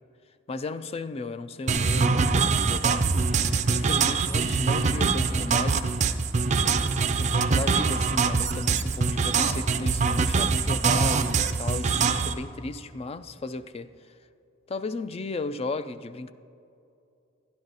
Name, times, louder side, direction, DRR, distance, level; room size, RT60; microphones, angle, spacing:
voice 1, 0.5-3.1 3.7-6.0 7.2-13.9 14.7-16.3, left 3 dB, 30° left, 0.4 m, -35 dB
sound 1, 1.7-12.3, right 4 dB, 35° right, 0.5 m, -24 dB
12.5 x 10.5 x 4.0 m
head